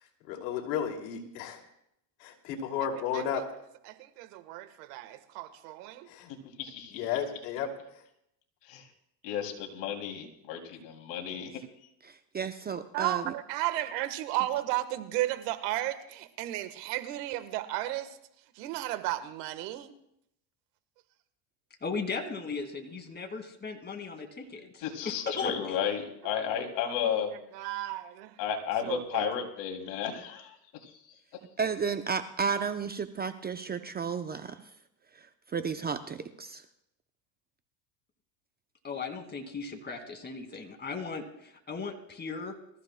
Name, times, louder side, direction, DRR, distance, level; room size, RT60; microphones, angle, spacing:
voice 1, 0.3-1.6 2.2-3.4 6.1-6.3 6.9-7.7, left 8 dB, 85° left, 2 dB, 2.7 m, -33 dB
voice 2, 3.8-6.1 12.9-18.2 18.5-19.9 26.9-27.2 27.5-28.4 28.8-29.3, right 15 dB, 80° right, 11 dB, 1.4 m, -34 dB
voice 3, 6.6-7.1 8.6-8.9 9.2-11.6 24.4-24.5 24.8-27.3 28.4-30.6 30.8-31.1, left 8 dB, 65° left, 2 dB, 2.9 m, -33 dB
voice 4, 12.0-13.3 31.6-34.6 35.2-35.3 35.5-36.6, right 6 dB, 20° right, 9 dB, 0.6 m, -33 dB
voice 5, 21.8-24.8 25.3-25.7 38.8-42.5, left 4 dB, 20° left, 4 dB, 2.2 m, -37 dB
24.5 x 14.5 x 2.2 m, 0.78 s
supercardioid pair, 110°, 47 cm